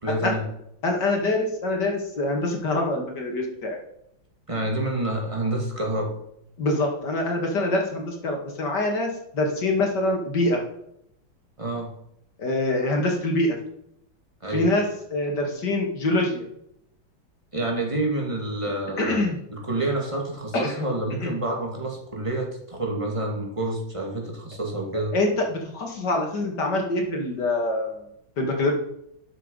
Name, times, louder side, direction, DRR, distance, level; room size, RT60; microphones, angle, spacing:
voice 1, 0.0-0.4 4.5-6.1 11.6-11.9 14.4-14.7 17.5-19.2 19.5-25.1, right 1 dB, 15° right, 0 dB, 2.5 m, -28 dB
voice 2, 0.8-3.8 6.6-10.6 12.4-13.6 14.5-16.4 19.0-19.4 20.5-20.7 21.2-21.4 24.9-28.0 28.4-28.7, left 2 dB, 55° left, 1 dB, 2.8 m, -25 dB
12.0 x 7.3 x 5.5 m, 0.75 s
omnidirectional pair, 2.2 m